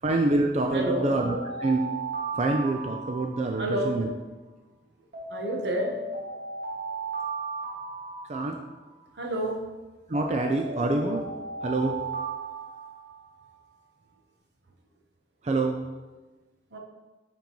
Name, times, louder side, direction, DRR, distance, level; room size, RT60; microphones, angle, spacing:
voice 1, 0.0-1.9 2.3-4.1 8.2-8.6 10.1-11.3 11.6-12.0 15.4-15.8, right 2 dB, 40° right, 3 dB, 0.4 m, -26 dB
Alarm, 0.6-4.0 5.1-9.0 10.1-13.4, right 2 dB, 60° right, 1.8 m, -36 dB
voice 2, 0.7-1.1 3.6-4.0 5.3-6.0 9.2-9.7 16.7-16.8, right 1 dB, 80° right, 1 dB, 1.0 m, -29 dB
7.0 x 5.2 x 3.0 m, 1.2 s
head